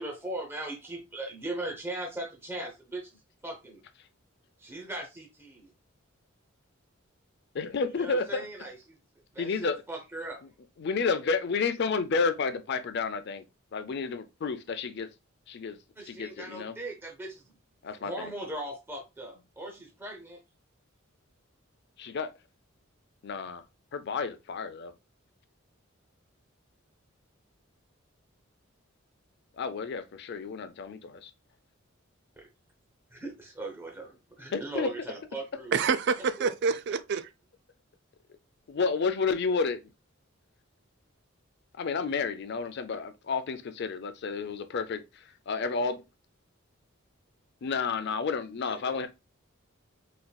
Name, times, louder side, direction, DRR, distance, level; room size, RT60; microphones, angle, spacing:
voice 1, 0.0-3.8 4.6-5.7 8.0-9.0 9.3-10.4 16.0-17.4 18.0-20.4 32.4-32.5 33.1-35.8 36.4-36.5 48.6-49.1, right 1 dB, 10° right, 0.6 m, -39 dB
voice 2, 7.5-8.4 9.4-9.8 10.8-13.4 13.7-15.1 15.5-15.8 16.1-16.7 17.8-18.3 22.0-22.3 23.2-23.6 23.9-24.9 29.6-31.3 34.5-34.9 38.7-39.8 41.8-46.0 47.6-49.1, left 4 dB, 55° left, 0.4 m, -31 dB
voice 3, 35.7-37.3, right 5 dB, 55° right, 0.3 m, -27 dB
4.1 x 2.5 x 2.3 m
head